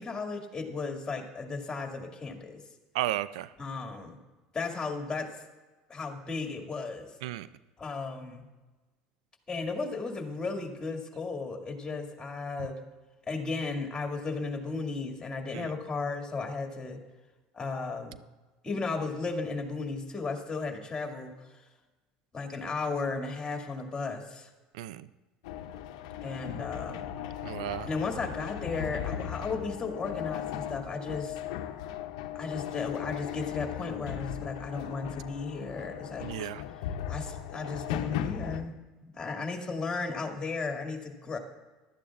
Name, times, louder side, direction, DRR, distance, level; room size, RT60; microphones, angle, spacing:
voice 1, 0.0-2.6 3.6-4.2 4.5-5.3 5.9-7.1 7.8-8.5 9.5-12.8 13.3-17.0 17.5-18.2 18.6-21.6 22.3-24.5 26.2-27.1 27.9-31.4 32.3-36.5 37.1-38.7 39.0-41.4, left 4 dB, 20° left, 3 dB, 2.1 m, -35 dB
voice 2, 2.9-3.5 7.2-7.5 15.5-15.7 24.7-25.1 27.4-27.9 36.2-36.6, right 14 dB, 80° right, 16 dB, 0.3 m, -34 dB
sound 1, 25.4-38.6, left 11 dB, 75° left, 0.6 m, -37 dB
15.5 x 12.0 x 2.4 m, 1.2 s
hypercardioid pair, 80°, 4 cm